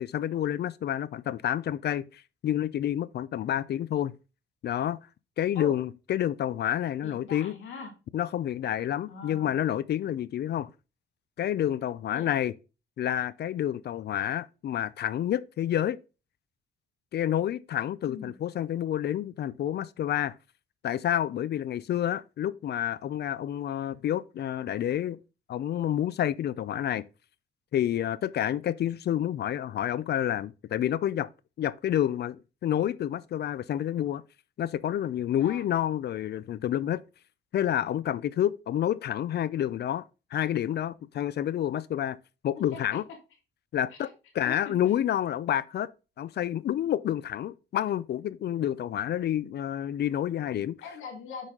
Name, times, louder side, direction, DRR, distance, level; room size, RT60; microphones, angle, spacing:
voice 1, 0.0-4.1 4.6-5.0 5.4-7.6 8.1-10.7 11.4-12.5 13.0-16.0 17.1-20.3 20.8-25.2 25.5-27.0 27.7-31.3 31.6-34.2 34.6-37.0 37.5-40.0 40.3-42.2 42.4-43.0 43.7-44.1 44.4-45.9 46.2-50.8, left 11 dB, 55° left, 0.5 m, -29 dB
voice 2, 7.0-7.9 9.1-9.6 12.1-12.3 18.1-18.3 35.4-35.7 42.7-43.0 44.0-44.1 44.4-44.7 50.8-51.5, left 5 dB, 85° left, 2.1 m, -41 dB
9.9 x 4.1 x 3.7 m
cardioid pair, 90°, 20 cm